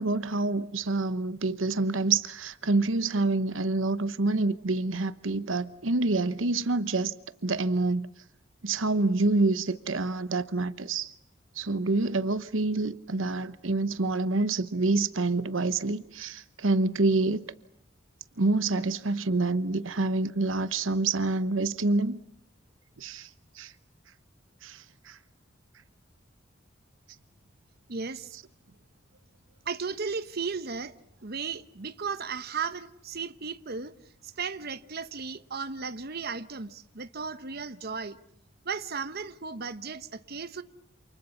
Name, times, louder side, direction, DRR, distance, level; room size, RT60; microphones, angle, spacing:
voice 1, 0.0-7.1 7.4-8.1 8.6-11.1 11.6-17.4 18.4-22.2 23.0-23.3 23.6-23.7 24.6-25.2, right 3 dB, 80° right, 1.0 m, -27 dB
voice 2, 27.9-28.4 29.6-30.9 31.2-33.9 34.2-38.2 38.6-40.6, right 5 dB, 55° right, 1.1 m, -35 dB
29.0 x 28.0 x 7.1 m
head